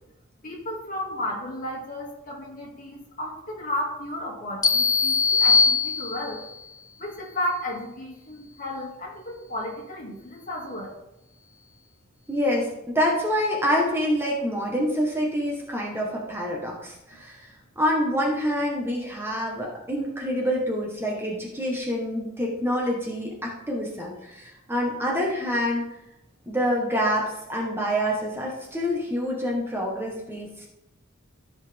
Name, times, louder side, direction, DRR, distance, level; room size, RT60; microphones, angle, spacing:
voice 1, 0.4-6.4 7.0-10.9, left 1 dB, 45° left, -2 dB, 2.5 m, -33 dB
sound 1, 4.6-6.5, left 4 dB, 20° left, 0.6 m, -21 dB
voice 2, 12.3-25.9 26.5-30.7, equal, 10° right, -2 dB, 1.4 m, -27 dB
14.0 x 5.7 x 3.6 m, 0.88 s
head